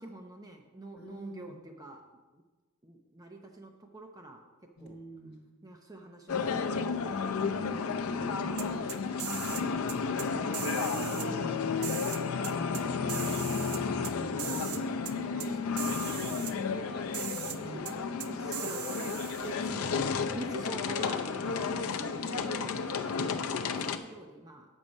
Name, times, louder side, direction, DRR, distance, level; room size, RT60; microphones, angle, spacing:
voice 1, 0.0-2.0 2.3-2.4 2.8-4.4 4.8-5.0 5.6-7.5 10.9-11.7 13.0-13.7 14.2-17.8 18.2-24.7, right 1 dB, 15° right, 3 dB, 0.6 m, -47 dB
voice 2, 0.9-1.6 4.8-5.4 7.9-9.3 11.1-11.9 14.3-14.6 15.1-15.3 17.5-17.8 19.6-19.9, right 1 dB, 50° left, 1 dB, 1.3 m, -49 dB
sound 1, 6.3-24.0, left 5 dB, 75° left, 0.5 m, -32 dB
sound 2, 8.6-9.6 9.9-10.3 10.5-11.3 11.8-12.8 13.1-14.1 14.4-14.8 15.0-15.1 15.4-15.5 15.8-16.5 17.1-17.6 17.8-17.9 18.2-19.5, right 12 dB, 80° right, 0.5 m, -39 dB
7.3 x 6.3 x 5.3 m, 1.2 s
head